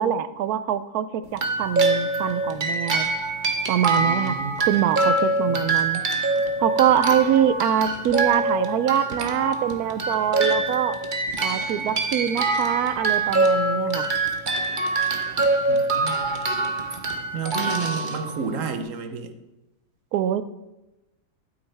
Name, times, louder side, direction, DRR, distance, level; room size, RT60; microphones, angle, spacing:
voice 1, 0.0-3.1 3.7-6.0 6.6-11.0 11.4-14.1 20.1-20.4, right 10 dB, 85° right, 13 dB, 1.1 m, -24 dB
sound 1, 1.3-18.8, right 2 dB, 35° right, 1.1 m, -24 dB
voice 2, 4.0-4.7 5.5-5.6 15.7-16.4 17.3-19.3, right 6 dB, 65° right, 8 dB, 1.2 m, -31 dB
12.0 x 9.4 x 3.4 m, 0.99 s
omnidirectional pair, 1.5 m